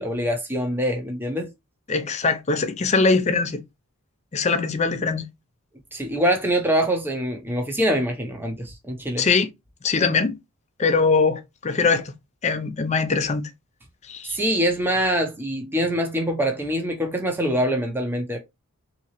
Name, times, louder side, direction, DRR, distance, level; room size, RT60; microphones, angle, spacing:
voice 1, 0.0-1.5 5.9-9.3 14.2-18.4, equal, 10° right, 0.7 m, -24 dB
voice 2, 1.9-3.6 4.3-5.2 9.2-9.5 9.8-10.4 10.8-12.1 12.4-13.5 14.1-14.4, left 4 dB, 30° left, 0.5 m, -22 dB
3.7 x 2.8 x 3.0 m
head